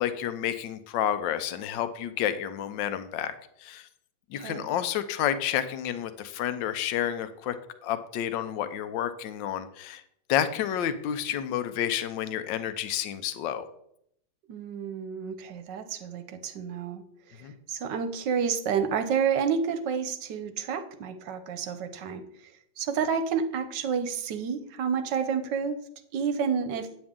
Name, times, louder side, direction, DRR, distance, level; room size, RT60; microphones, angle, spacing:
voice 1, 0.0-3.3 3.6-3.9 4.3-7.6 7.8-10.0 10.3-13.6 17.4-17.5, left 10 dB, 70° left, 11 dB, 1.4 m, -30 dB
voice 2, 4.4-4.7 14.5-17.0 17.7-22.2 22.8-25.8 26.1-27.0, right 6 dB, 70° right, 10 dB, 1.3 m, -29 dB
9.1 x 8.7 x 3.7 m, 0.74 s
omnidirectional pair, 2.2 m